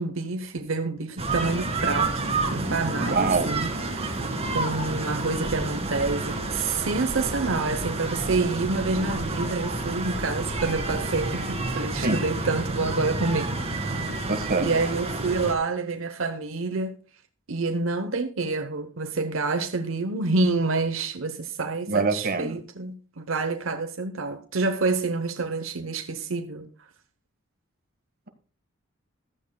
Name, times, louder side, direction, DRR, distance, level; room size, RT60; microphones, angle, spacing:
voice 1, 0.0-2.2 2.5-4.1 4.5-14.0 14.6-17.0 17.5-26.7, right 3 dB, 75° right, 0.9 m, -28 dB
sound 1, 1.2-15.5, right 2 dB, 30° right, 2.1 m, -29 dB
voice 2, 3.0-3.5 12.0-12.2 14.3-14.7 21.9-22.6, right 3 dB, 50° right, 1.6 m, -24 dB
15.0 x 13.0 x 2.3 m
head